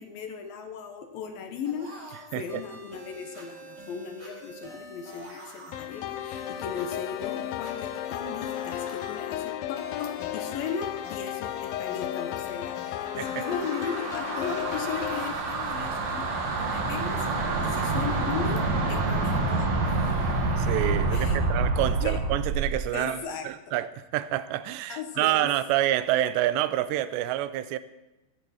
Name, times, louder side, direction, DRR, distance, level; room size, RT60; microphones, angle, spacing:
voice 1, 0.0-16.3 16.6-19.7 21.1-21.4 22.0-22.2 22.9-23.5 24.9-25.5, left 6 dB, 70° left, 2.5 m, -37 dB
sound 1, 1.6-17.1, equal, 25° right, 5.1 m, -46 dB
voice 2, 2.3-2.6 13.2-13.4 20.6-27.8, right 13 dB, 90° right, 2.9 m, -28 dB
sound 2, 5.7-15.3, left 12 dB, 85° left, 2.1 m, -34 dB
sound 3, 13.0-22.8, right 3 dB, 50° right, 3.1 m, -27 dB
15.0 x 15.0 x 4.3 m
omnidirectional pair, 4.9 m